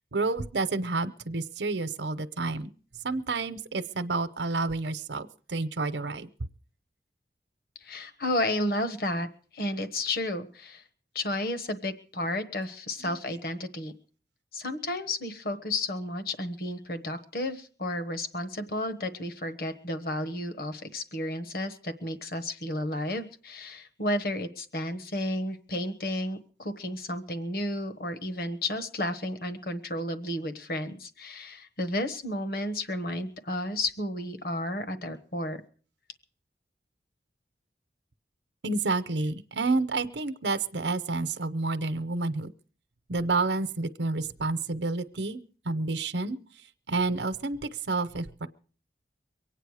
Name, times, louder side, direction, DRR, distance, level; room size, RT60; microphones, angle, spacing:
voice 1, 0.1-2.7 3.0-6.3 13.0-13.2 38.6-42.5 43.1-45.4 45.6-46.4 46.9-48.5, right 3 dB, 85° right, 10 dB, 0.8 m, -29 dB
voice 2, 7.8-9.3 9.5-10.8 11.1-13.9 14.5-35.6, left 1 dB, 55° left, 9 dB, 1.2 m, -32 dB
24.0 x 9.0 x 4.9 m, 0.42 s
head